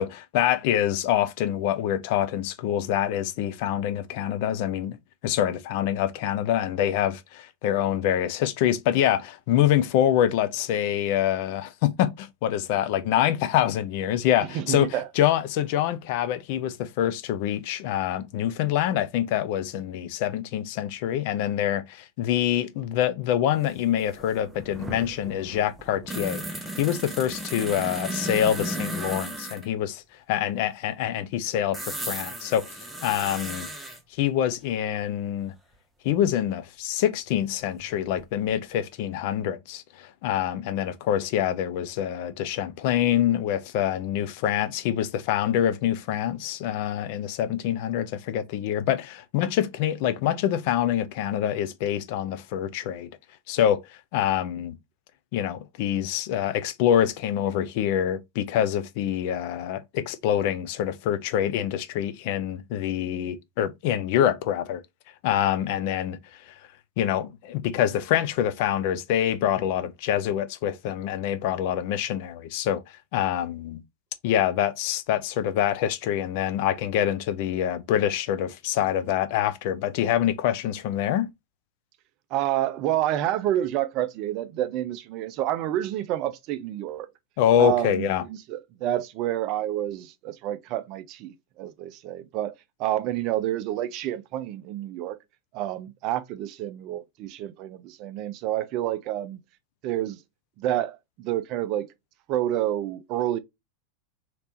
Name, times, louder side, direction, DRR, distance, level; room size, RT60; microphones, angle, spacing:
voice 1, 0.0-5.0 5.2-14.9 15.2-30.0 30.3-33.7 34.2-35.5 36.0-53.1 53.5-54.7 55.3-64.8 65.2-66.2 66.5-66.6 67.0-72.8 73.1-73.8 74.2-81.3 87.4-88.2, left 10 dB, 45° left, 0.4 m, -25 dB
voice 2, 14.5-15.0 27.6-27.9 82.3-87.1 87.6-92.5 92.8-95.2 95.5-99.4 99.8-100.2 100.6-101.9 102.3-103.4, right 12 dB, 40° right, 0.4 m, -29 dB
sound 1, 23.7-23.8 24.0-29.7 31.7-34.0 36.2-36.3 37.8-38.5 38.8-38.9, right 1 dB, 5° right, 0.7 m, -35 dB
3.3 x 2.9 x 2.5 m
figure-of-eight pair, 90°, 0 cm